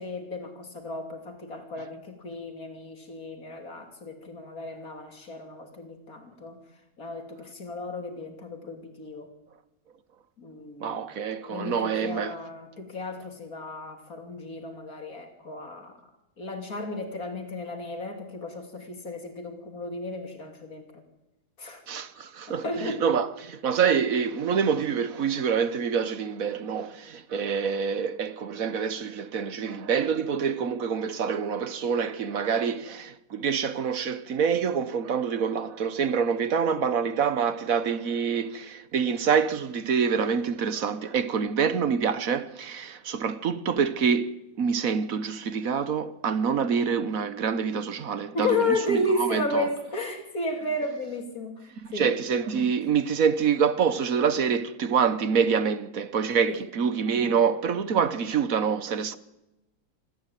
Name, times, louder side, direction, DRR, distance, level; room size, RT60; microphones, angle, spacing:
voice 1, 0.0-6.6 7.0-9.3 10.4-11.1 11.4-16.0 16.4-21.0 21.6-21.8 22.5-23.0 48.3-51.6 51.9-52.1 56.5-56.6, left 2 dB, 65° left, 3.4 m, -33 dB
voice 2, 10.8-12.4 21.9-49.7 51.8-59.2, right 6 dB, 65° right, 1.4 m, -26 dB
26.0 x 14.0 x 9.2 m
omnidirectional pair, 1.6 m